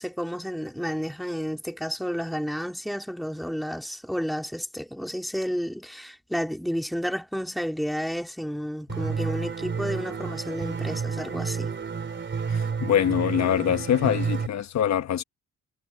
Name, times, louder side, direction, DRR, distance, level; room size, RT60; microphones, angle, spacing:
voice 1, 0.0-11.7, equal, ahead, 2.7 m, -31 dB
sound 1, 8.9-14.5, right 5 dB, 40° right, 3.3 m, -30 dB
voice 2, 12.5-15.2, left 9 dB, 65° left, 1.2 m, -24 dB
cardioid pair, 90°, 30 cm